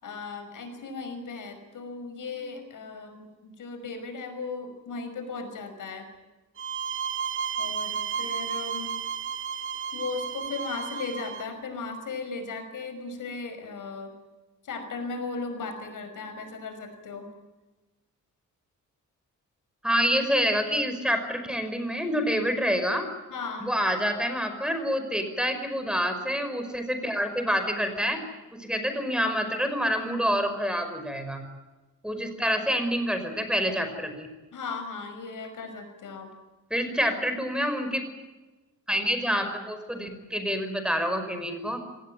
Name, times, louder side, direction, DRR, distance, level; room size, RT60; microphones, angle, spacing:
voice 1, 0.0-6.1 7.6-8.9 9.9-14.1 14.6-17.3 23.3-23.7 34.5-36.3, left 4 dB, 85° left, 7 dB, 5.6 m, -36 dB
sound 1, 6.6-11.5, right 7 dB, 40° right, 1.7 m, -32 dB
voice 2, 19.8-23.1 23.6-28.2 28.5-31.4 32.0-34.3 36.7-38.1 38.9-41.8, equal, 5° right, 7 dB, 5.4 m, -27 dB
25.5 x 18.5 x 9.1 m, 1.2 s
cardioid pair, 105°, 31 cm